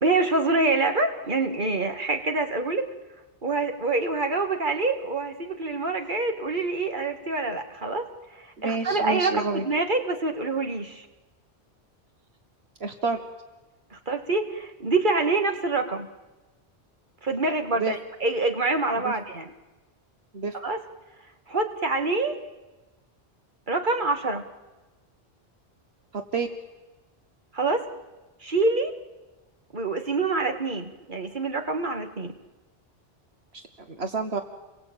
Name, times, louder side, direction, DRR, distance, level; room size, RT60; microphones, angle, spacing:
voice 1, 0.0-2.9 3.4-8.1 8.3-11.1 13.9-16.1 17.2-19.5 20.6-20.8 21.5-22.4 23.7-24.4 27.5-27.9 28.4-28.9 29.7-32.3, right 3 dB, 45° right, 5 dB, 2.3 m, -26 dB
voice 2, 8.6-9.6 12.8-13.2 17.7-17.9 19.0-19.1 20.3-20.5 26.3-26.5 33.9-34.4, right 4 dB, 70° right, 6 dB, 1.7 m, -28 dB
29.5 x 22.5 x 8.9 m, 1.1 s
omnidirectional pair, 1.1 m